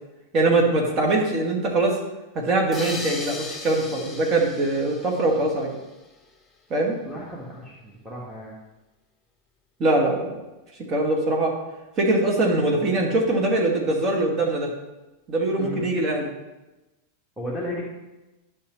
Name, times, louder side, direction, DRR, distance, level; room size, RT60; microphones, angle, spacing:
voice 1, 0.3-2.0 2.3-5.7 6.7-7.0 9.8-10.3 10.9-11.5 12.0-14.7 15.3-16.3, right 2 dB, 30° right, -1 dB, 2.2 m, -22 dB
sound 1, 2.7-6.0, left 3 dB, 15° left, 1.0 m, -37 dB
voice 2, 7.0-8.5 15.6-15.8 17.4-17.8, equal, 5° right, -6 dB, 1.7 m, -34 dB
12.0 x 5.9 x 3.3 m, 1.0 s
figure-of-eight pair, 90°, 0 cm